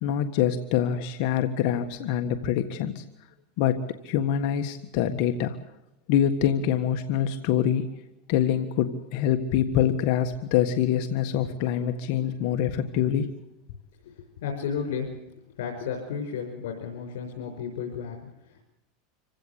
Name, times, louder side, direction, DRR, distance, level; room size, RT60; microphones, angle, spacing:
voice 1, 0.0-3.0 3.6-5.6 6.1-7.9 8.3-13.3, left 9 dB, 60° left, 7 dB, 1.6 m, -25 dB
voice 2, 14.0-15.1 15.6-18.6, left 6 dB, 80° left, 1 dB, 5.7 m, -33 dB
27.0 x 16.5 x 8.4 m, 0.87 s
supercardioid pair, 135°, 0 cm